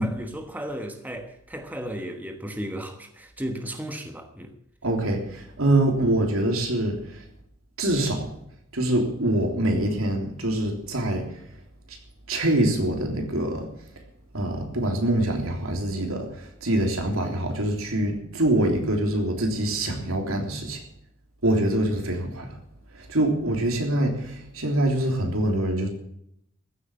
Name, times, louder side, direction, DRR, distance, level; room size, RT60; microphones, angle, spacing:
voice 1, 0.0-4.5, equal, 10° right, 1.2 m, -35 dB
voice 2, 4.8-7.2 7.8-8.3 8.7-11.4 11.9-12.0 12.3-13.7 14.3-20.8 21.4-22.6 22.9-25.9, right 1 dB, 90° right, 3.5 m, -25 dB
15.0 x 8.2 x 8.8 m
head